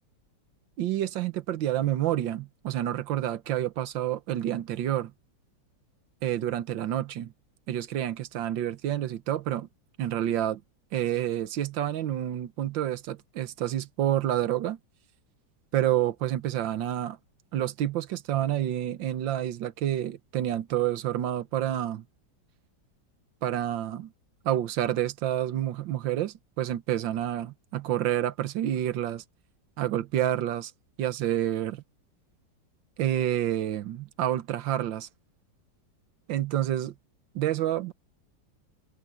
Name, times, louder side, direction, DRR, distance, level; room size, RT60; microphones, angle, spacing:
voice 1, 0.8-5.1 6.2-7.3 7.7-9.7 10.0-10.6 10.9-14.8 15.7-17.2 17.5-22.0 23.4-24.1 24.5-29.2 29.8-30.7 31.0-31.8 33.0-35.1 36.3-36.9 37.4-37.9, right 12 dB, 80° right, 1.7 m, -28 dB
omnidirectional pair, 2.0 m